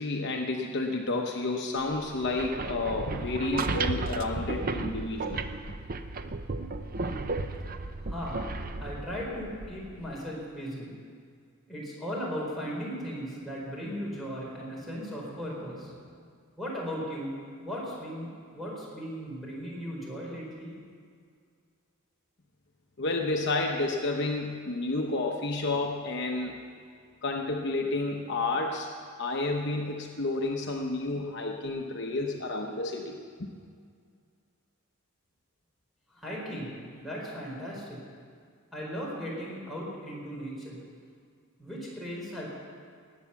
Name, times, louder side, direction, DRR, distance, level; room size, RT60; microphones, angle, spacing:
voice 1, 0.0-5.4 23.0-26.6 27.2-28.9 29.2-33.5, left 2 dB, 50° left, 1 dB, 0.9 m, -30 dB
sound 1, 2.1-10.2, right 3 dB, 40° right, 0.6 m, -34 dB
voice 2, 8.0-8.4 8.8-10.9 11.7-16.1 16.6-20.7 36.1-38.0 38.7-40.8 41.6-42.5, equal, ahead, -6 dB, 4.3 m, -37 dB
19.0 x 8.4 x 7.1 m, 2.1 s
head